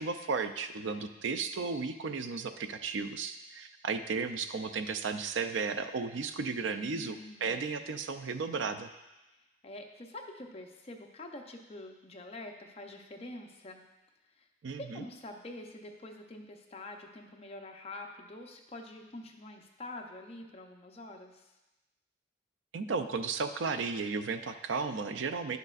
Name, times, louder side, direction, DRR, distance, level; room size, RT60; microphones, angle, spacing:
voice 1, 0.0-8.9 14.6-15.0 22.7-25.6, right 4 dB, 75° right, 9 dB, 0.4 m, -34 dB
voice 2, 6.6-7.8 9.6-13.8 14.4-14.5 14.8-21.5, left 2 dB, 30° left, 3 dB, 0.6 m, -46 dB
10.5 x 6.5 x 2.4 m, 1.0 s
head